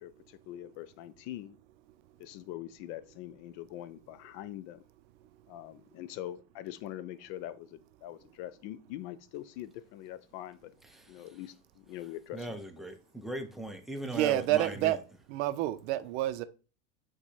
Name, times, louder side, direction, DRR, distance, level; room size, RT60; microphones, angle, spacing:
voice 1, 0.0-1.6 2.2-4.8 5.5-10.7 11.1-12.6, left 13 dB, 55° left, 0.5 m, -43 dB
voice 2, 10.9-11.3 12.3-14.9, right 1 dB, ahead, 0.4 m, -39 dB
voice 3, 14.0-15.0 15.3-16.4, right 15 dB, 60° right, 0.5 m, -28 dB
4.6 x 2.3 x 4.1 m
hypercardioid pair, 105°, 40 cm